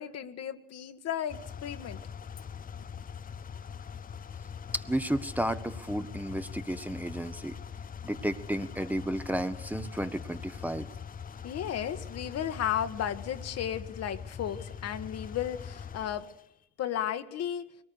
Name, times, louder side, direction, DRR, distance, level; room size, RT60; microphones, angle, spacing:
voice 1, 0.0-2.0 3.0-3.1 11.4-16.3 16.8-17.7, left 10 dB, 45° left, 10 dB, 1.5 m, -34 dB
sound 1, 1.3-16.4, left 7 dB, 25° left, 0.7 m, -43 dB
voice 2, 4.7-7.6 8.0-10.9, right 1 dB, 5° right, 8 dB, 1.1 m, -32 dB
23.0 x 19.0 x 6.4 m, 0.80 s
figure-of-eight pair, 55°, 34 cm